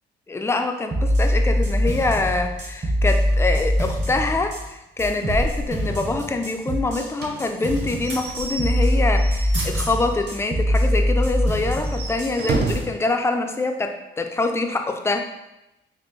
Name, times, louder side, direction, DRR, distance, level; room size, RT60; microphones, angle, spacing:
voice 1, 0.3-15.2, left 3 dB, 15° left, 5 dB, 0.4 m, -25 dB
sound 1, 0.9-4.7 5.0-7.1 7.4-12.3 12.7-12.8, equal, 40° right, 1.1 m, -23 dB
sound 2, 5.3-5.9 7.6-8.3 9.2-9.3 9.5-9.9 10.4-10.6, right 2 dB, 80° right, 1.5 m, -35 dB
Slam / Squeak / Wood, 7.2-10.4 10.7-10.8 11.1-11.2 11.7-13.0, right 3 dB, 55° right, 0.6 m, -31 dB
4.3 x 2.5 x 3.0 m, 0.93 s
cardioid pair, 90°, 20 cm